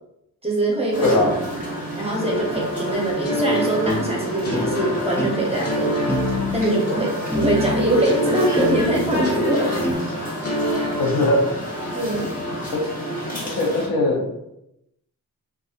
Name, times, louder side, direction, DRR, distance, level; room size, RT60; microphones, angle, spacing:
voice 1, 0.4-1.1 2.0-6.0 6.5-9.7 11.9-12.4, right 1 dB, 15° right, -3 dB, 0.7 m, -23 dB
sound 1, 0.9-13.9, equal, 25° left, 1.0 m, -29 dB
voice 2, 1.0-1.4 11.0-11.5 12.7-12.9 13.4-14.3, left 1 dB, 80° left, 0 dB, 0.7 m, -20 dB
sound 2, 3.2-7.2 8.0-11.9, equal, 40° left, 0.7 m, -28 dB
sound 3, 3.9-4.1 4.5-4.7 5.2-5.4 6.1-6.7 7.3-8.0 8.6-9.3 9.8-9.9, left 2 dB, 5° left, 0.3 m, -26 dB
2.6 x 2.4 x 2.4 m, 0.84 s
wide cardioid pair, 85°, 35 cm